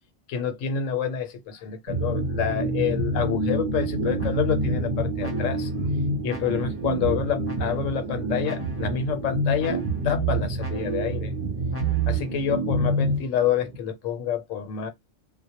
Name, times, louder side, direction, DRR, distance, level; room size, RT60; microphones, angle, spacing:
voice 1, 0.3-5.7 6.2-11.3 12.1-14.9, left 8 dB, 85° left, 1.0 m, -28 dB
sound 1, 1.9-13.8, right 2 dB, 50° right, 0.7 m, -27 dB
sound 2, 4.2-4.7 5.2-5.8 6.3-6.9 7.4-8.0 8.4-9.1 9.6-10.2 10.6-11.2 11.7-12.3, left 1 dB, 15° left, 0.6 m, -45 dB
2.1 x 2.1 x 2.7 m
omnidirectional pair, 1.3 m